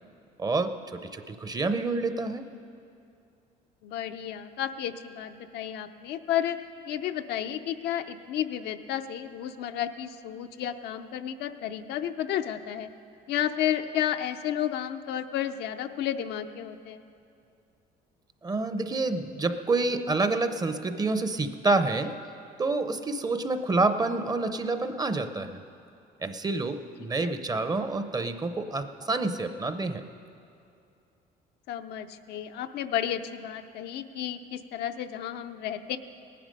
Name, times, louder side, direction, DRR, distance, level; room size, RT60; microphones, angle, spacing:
voice 1, 0.4-2.4 18.4-22.2 22.6-25.6 26.2-30.0, right 3 dB, 25° right, 10 dB, 0.7 m, -28 dB
voice 2, 3.8-6.6 6.9-12.9 13.3-17.0 27.0-27.3 31.7-36.0, left 10 dB, 75° left, 7 dB, 0.6 m, -32 dB
18.0 x 10.0 x 5.3 m, 2.6 s
cardioid pair, 110°, 17 cm